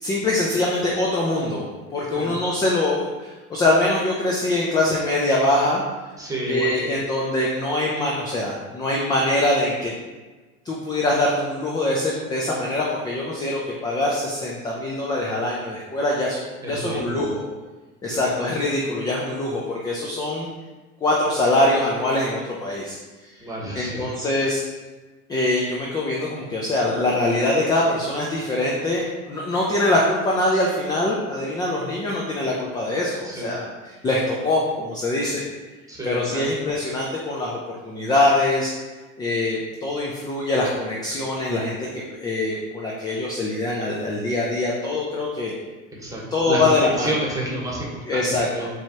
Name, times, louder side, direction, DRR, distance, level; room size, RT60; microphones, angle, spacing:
voice 1, 0.0-1.7 1.9-5.8 6.4-9.9 10.6-17.4 18.0-20.5 21.0-23.0 23.2-23.3 23.7-24.6 25.3-35.4 36.0-38.7 39.2-41.8 42.2-45.5 46.3-47.2 48.1-48.7, left 2 dB, 10° left, -3 dB, 0.3 m, -23 dB
voice 2, 6.2-6.7 16.6-17.3 18.1-18.2 23.4-24.1 33.2-33.5 35.9-36.4 46.0-48.7, right 1 dB, 10° right, -3 dB, 1.1 m, -30 dB
4.3 x 3.3 x 2.8 m, 1.2 s
figure-of-eight pair, 80°, 41 cm